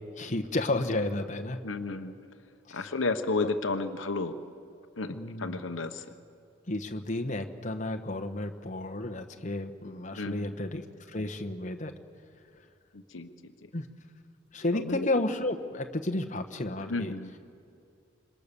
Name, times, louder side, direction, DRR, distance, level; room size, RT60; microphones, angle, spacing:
voice 1, 0.2-1.6 2.7-2.9 3.4-3.5 5.1-5.6 6.7-11.9 13.7-13.9 14.5-17.1, left 2 dB, 40° left, 4 dB, 1.2 m, -32 dB
voice 2, 1.6-2.1 2.7-4.3 5.0-6.0 10.2-10.6 12.9-13.3 14.7-15.1 16.9-17.3, left 3 dB, 70° left, 8 dB, 1.1 m, -32 dB
26.5 x 23.0 x 6.9 m, 2.7 s
head